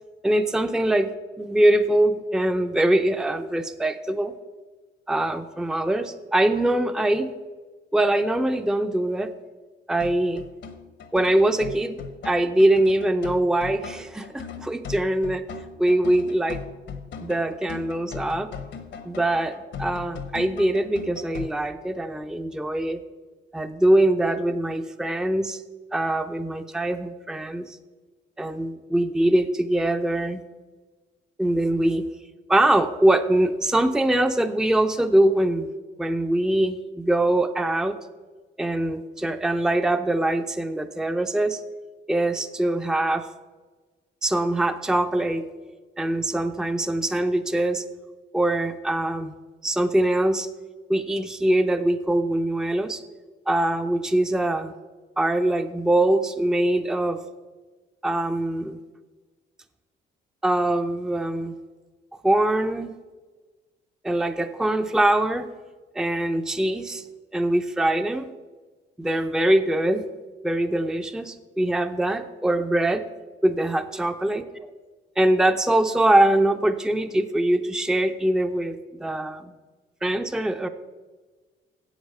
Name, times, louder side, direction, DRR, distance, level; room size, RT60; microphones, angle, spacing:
voice 1, 0.2-1.1 1.4-4.3 5.1-7.3 7.9-9.3 9.9-10.5 11.1-12.0 12.2-15.4 15.8-16.6 17.2-18.5 19.0-23.0 23.5-25.6 25.9-27.8 28.4-30.4 31.4-32.1 32.5-35.7 36.0-38.0 38.6-41.6 42.1-43.3 44.2-45.4 46.0-47.8 48.3-49.3 49.6-50.5 50.9-53.0 53.5-54.7 55.2-57.2 58.0-58.8 60.4-61.5 62.2-62.9 64.0-65.5 65.9-67.0 67.3-68.3 69.0-70.0 70.4-73.0 73.4-74.7 75.2-79.5 80.0-80.7, right 1 dB, 5° right, 8 dB, 0.6 m, -23 dB
sound 1, 10.0-21.5, left 6 dB, 65° left, 1.1 m, -39 dB
8.1 x 7.9 x 6.7 m, 1.3 s
cardioid pair, 90°, 20 cm